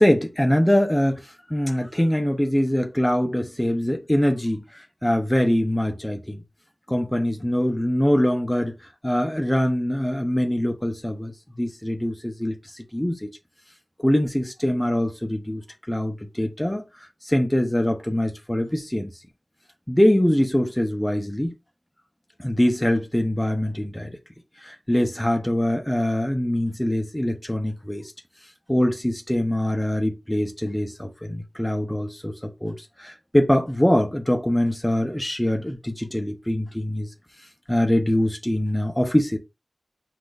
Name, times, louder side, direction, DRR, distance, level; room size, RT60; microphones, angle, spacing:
voice 1, 0.0-6.4 6.9-8.7 9.0-13.3 14.0-19.1 19.9-21.5 22.4-24.2 24.6-28.1 28.7-37.1 37.7-39.4, left 1 dB, 10° left, 0.9 m, -23 dB
5.9 x 3.4 x 2.6 m
wide cardioid pair, 55°, 0 cm